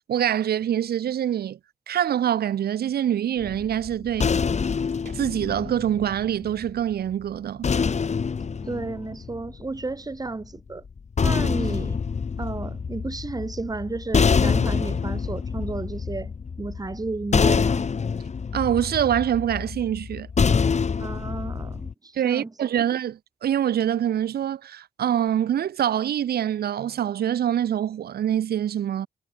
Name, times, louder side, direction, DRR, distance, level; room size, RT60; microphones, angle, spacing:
voice 1, 0.0-1.6 1.9-4.3 5.1-7.7 18.5-20.3 22.1-29.1, right 10 dB, 75° right, 0.9 m, -25 dB
sound 1, 3.4-6.7 7.6-9.9 10.9-21.9, left 5 dB, 45° left, 1.4 m, -26 dB
voice 2, 8.6-10.8 11.2-12.0 12.4-16.3 16.6-17.8 21.0-22.5, right 3 dB, 25° right, 1.6 m, -32 dB
cardioid pair, 70°, 16 cm